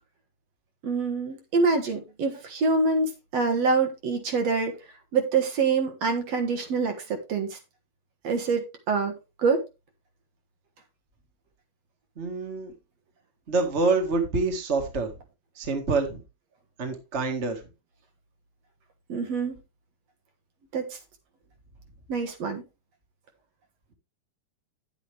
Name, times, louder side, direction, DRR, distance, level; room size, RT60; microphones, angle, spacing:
voice 1, 0.8-4.7 5.1-7.6 8.2-9.6 19.1-19.6 20.7-21.0 22.1-22.6, right 4 dB, 60° right, 2.5 m, -26 dB
voice 2, 12.2-12.7 13.5-15.1 15.5-16.2 16.8-17.6, right 3 dB, 25° right, 1.7 m, -26 dB
10.5 x 8.2 x 3.3 m
omnidirectional pair, 3.4 m